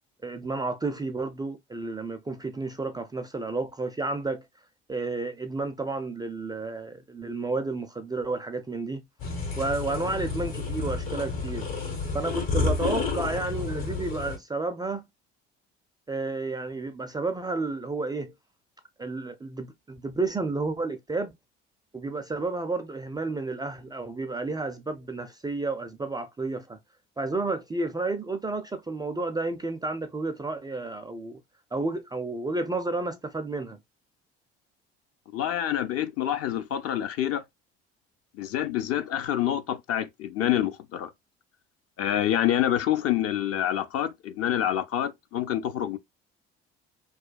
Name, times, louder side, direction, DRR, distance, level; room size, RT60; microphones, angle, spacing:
voice 1, 0.2-4.5 4.9-9.0 9.5-11.7 12.1-15.1 16.1-18.3 19.0-21.3 21.9-26.8 27.2-31.4 31.7-33.8, right 3 dB, 15° right, 0.3 m, -31 dB
sound 1, 9.2-14.4, left 4 dB, 70° left, 1.9 m, -30 dB
voice 2, 35.3-37.4 38.3-41.1 42.0-46.0, left 11 dB, 50° left, 0.5 m, -27 dB
2.9 x 2.2 x 2.2 m
hypercardioid pair, 55°, 32 cm